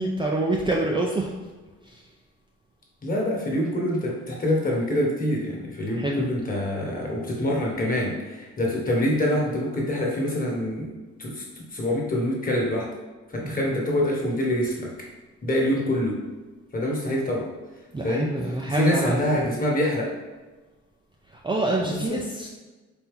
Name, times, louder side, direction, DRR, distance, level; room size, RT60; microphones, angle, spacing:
voice 1, 0.0-1.3 1.8-2.1 5.9-6.3 13.4-13.7 17.9-19.5 21.3-22.5, right 2 dB, 15° right, -2 dB, 0.5 m, -27 dB
voice 2, 3.0-10.9 11.2-12.9 13.3-14.9 15.4-16.2 16.7-17.4 18.0-18.3 18.7-20.1 21.9-22.2, left 1 dB, 30° left, -3 dB, 1.4 m, -25 dB
4.3 x 2.8 x 3.7 m, 1.2 s
cardioid pair, 90°, 30 cm